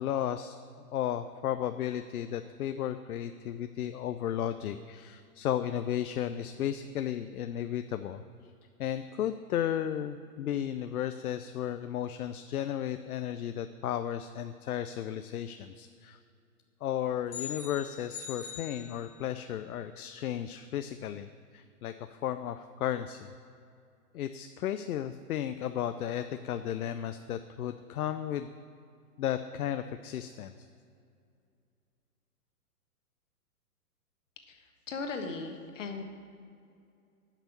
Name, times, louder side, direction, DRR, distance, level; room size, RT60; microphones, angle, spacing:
voice 1, 0.0-8.2 8.8-16.2 16.8-21.3 21.5-23.3 24.1-28.5 29.2-30.5, left 10 dB, 70° left, 9 dB, 0.5 m, -34 dB
sound 1, 17.3-19.5, left 7 dB, 15° left, 0.8 m, -43 dB
voice 2, 34.9-36.0, left 4 dB, 50° left, 4 dB, 1.3 m, -37 dB
10.5 x 6.0 x 6.8 m, 2.4 s
hypercardioid pair, 170°, 47 cm